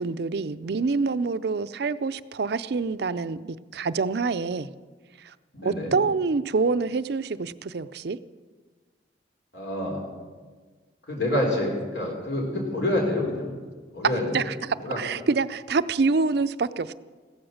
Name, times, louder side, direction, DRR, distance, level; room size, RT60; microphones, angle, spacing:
voice 1, 0.0-4.7 5.2-5.3 5.6-8.2 14.3-16.9, right 4 dB, 65° right, 14 dB, 0.5 m, -26 dB
voice 2, 5.5-5.9 9.5-10.0 11.1-13.5 13.9-14.3 14.8-15.0, left 1 dB, 75° left, 0 dB, 3.8 m, -27 dB
16.0 x 14.0 x 6.5 m, 1.4 s
head